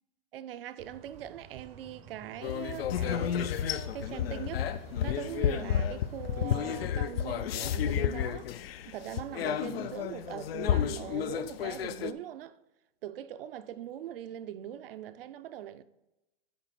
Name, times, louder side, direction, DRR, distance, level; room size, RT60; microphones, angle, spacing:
voice 1, 0.3-4.7 5.0-8.5 8.9-12.6 13.0-15.8, right 11 dB, 70° right, 0.6 m, -41 dB
sound 1, 0.8-7.1, right 8 dB, 25° right, 0.5 m, -51 dB
sound 2, 2.4-12.1, left 9 dB, 80° left, 0.6 m, -31 dB
9.5 x 4.0 x 5.8 m
supercardioid pair, 155°, 29 cm